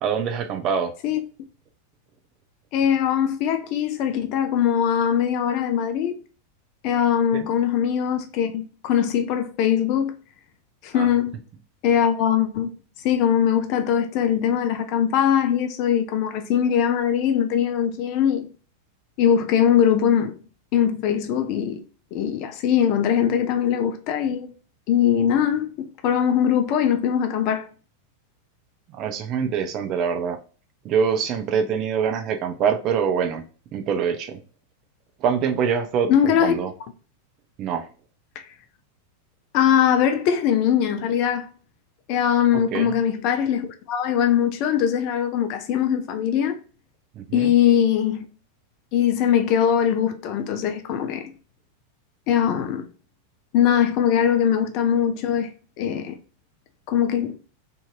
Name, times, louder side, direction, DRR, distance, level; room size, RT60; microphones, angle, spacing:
voice 1, 0.0-0.9 7.3-7.5 10.9-11.1 28.9-30.4 30.8-33.4 33.7-34.4 35.2-36.7 37.6-37.8 42.5-43.0 47.2-47.5, right 7 dB, 35° right, 0.4 m, -24 dB
voice 2, 2.7-6.1 6.8-10.1 10.8-11.3 11.8-12.7 13.0-18.5 19.2-20.3 20.7-21.8 22.1-24.5 24.9-27.7 36.1-36.5 39.5-41.5 42.1-46.6 47.3-48.2 48.9-51.3 52.3-52.9 53.5-55.5 55.8-56.2 56.9-57.4, left 9 dB, 45° left, 0.4 m, -21 dB
2.6 x 2.6 x 2.2 m
figure-of-eight pair, 90°, 0 cm